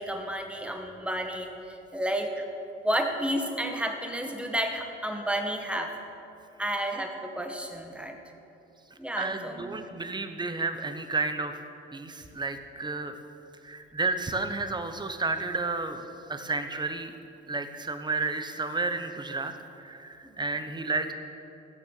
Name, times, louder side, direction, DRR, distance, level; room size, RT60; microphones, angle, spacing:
voice 1, 0.0-2.5 2.8-6.0 6.6-8.2 9.0-9.8 20.2-20.6, right 1 dB, 5° right, 3 dB, 1.6 m, -31 dB
voice 2, 9.2-11.6 11.9-13.2 13.6-16.0 16.3-17.1 17.5-19.5 19.8-21.1, right 3 dB, 20° right, 8 dB, 1.1 m, -31 dB
15.5 x 7.1 x 6.7 m, 2.9 s
cardioid pair, 90°, 20 cm